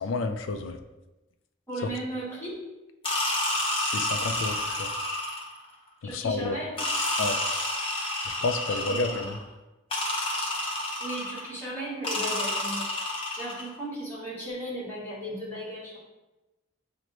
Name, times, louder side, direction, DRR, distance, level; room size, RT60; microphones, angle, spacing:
voice 1, 0.0-0.8 3.8-4.9 6.1-6.6 7.2-7.4 8.4-9.3, left 3 dB, 75° left, 8 dB, 0.3 m, -30 dB
voice 2, 1.7-2.6 6.0-6.8 8.7-9.4 11.0-16.0, right 1 dB, 10° left, -8 dB, 1.1 m, -36 dB
sound 1, 3.0-5.6 6.8-9.4 9.9-11.5 12.0-13.7, left 1 dB, 25° left, 0.7 m, -29 dB
6.1 x 2.1 x 2.9 m, 1.0 s
head